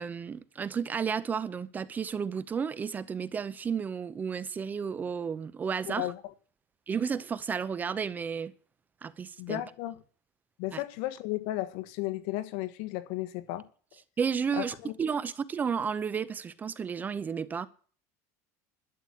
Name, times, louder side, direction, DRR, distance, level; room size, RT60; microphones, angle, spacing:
voice 1, 0.0-6.1 6.9-8.5 9.0-9.6 10.7-10.8 14.2-17.7, right 6 dB, 20° right, 0.7 m, -32 dB
voice 2, 5.9-6.2 9.4-9.9 10.6-13.7 14.6-14.9, left 16 dB, 65° left, 1.5 m, -34 dB
12.5 x 8.3 x 8.5 m
cardioid pair, 145°, 8 cm